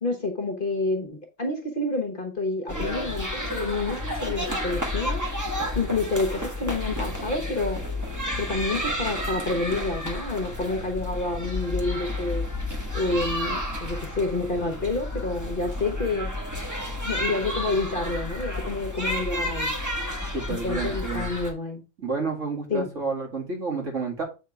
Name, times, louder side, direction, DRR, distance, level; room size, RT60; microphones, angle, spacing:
voice 1, 0.0-5.4 5.7-7.8 8.4-12.4 12.9-16.3 17.0-19.7 20.5-21.8 22.7-22.9, left 3 dB, 40° left, 1.1 m, -28 dB
sound 1, 2.7-21.5, left 1 dB, 15° right, 1.5 m, -31 dB
voice 2, 20.3-21.3 22.0-24.2, right 4 dB, 60° right, 2.6 m, -30 dB
8.0 x 3.7 x 4.7 m
omnidirectional pair, 1.5 m